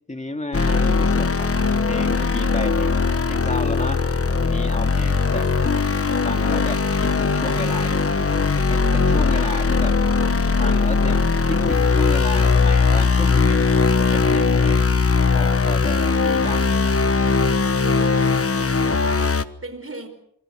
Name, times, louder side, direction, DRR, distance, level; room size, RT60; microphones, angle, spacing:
voice 1, 0.1-4.1 4.4-5.5 6.2-8.2 8.7-10.0 10.6-14.9 15.3-16.9, left 2 dB, 15° left, 7 dB, 2.1 m, -33 dB
sound 1, 0.5-19.4, left 4 dB, 35° left, 1.1 m, -19 dB
sound 2, 4.8-14.2, left 3 dB, 65° left, 7.6 m, -43 dB
voice 2, 17.7-20.1, right 2 dB, 35° right, 8 dB, 5.0 m, -39 dB
26.5 x 25.0 x 6.5 m, 0.73 s
wide cardioid pair, 95°, 41 cm